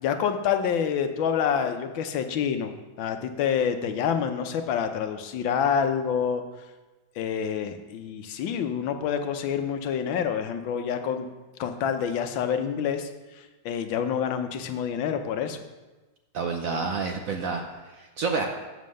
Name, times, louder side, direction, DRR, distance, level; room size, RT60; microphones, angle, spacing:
voice 1, 0.0-6.4 7.2-11.3 11.6-13.1 13.6-15.6, left 7 dB, 75° left, 7 dB, 1.5 m, -27 dB
voice 2, 16.3-18.5, right 4 dB, 65° right, 3 dB, 0.8 m, -29 dB
7.3 x 6.7 x 6.3 m, 1.2 s
omnidirectional pair, 2.2 m